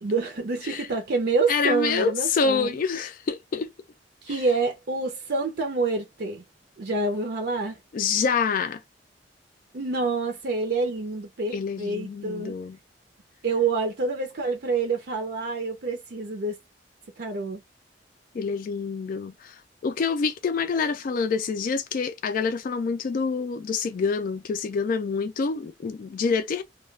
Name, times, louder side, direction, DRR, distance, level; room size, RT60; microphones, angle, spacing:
voice 1, 0.0-2.7 4.2-6.4 6.8-7.8 9.7-12.6 13.4-16.6 17.2-17.6, right 3 dB, 60° right, 0.6 m, -27 dB
voice 2, 1.5-3.7 4.3-4.4 7.9-8.8 11.5-12.8 18.3-19.5 19.8-26.6, left 5 dB, 50° left, 0.3 m, -27 dB
2.3 x 2.2 x 3.2 m
head